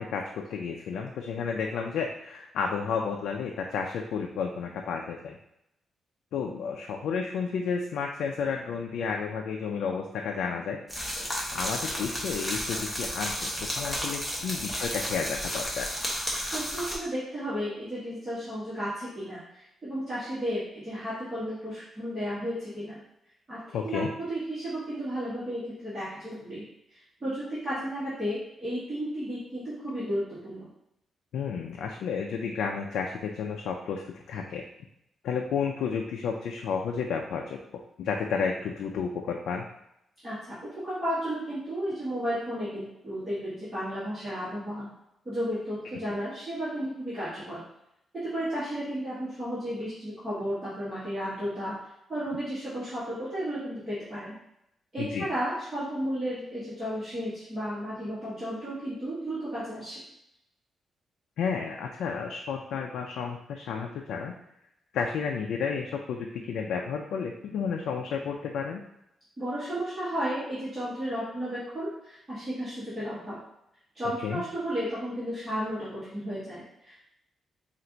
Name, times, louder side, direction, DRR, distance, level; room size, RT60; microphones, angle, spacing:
voice 1, 0.0-5.4 6.3-10.8 11.5-15.9 23.7-24.1 31.3-34.6 35.2-39.7 55.0-55.3 61.4-64.3 64.9-68.8 74.2-74.4, left 6 dB, 85° left, 1 dB, 0.4 m, -32 dB
sound 1, 10.9-17.0, equal, 5° left, 0.8 m, -32 dB
voice 2, 16.5-23.0 23.5-23.6 23.8-24.0 24.3-26.6 26.9-30.7 40.2-40.6 40.8-44.9 45.2-47.6 48.1-51.8 52.1-54.4 54.9-60.0 69.4-73.4 73.9-77.0, equal, 15° right, -13 dB, 1.4 m, -33 dB
4.4 x 2.5 x 3.9 m, 0.81 s
wide cardioid pair, 180°, 0 cm